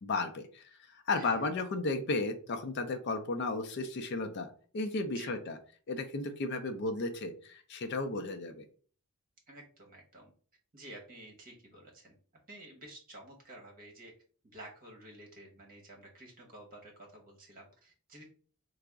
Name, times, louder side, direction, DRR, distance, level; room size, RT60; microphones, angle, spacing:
voice 1, 0.0-5.6 5.9-8.6, left 3 dB, 50° left, 7 dB, 0.4 m, -34 dB
voice 2, 5.0-5.4 9.5-10.3 10.7-12.2 12.5-14.1 14.4-18.2, right 1 dB, 40° right, 0 dB, 1.0 m, -51 dB
3.4 x 2.0 x 3.5 m, 0.43 s
head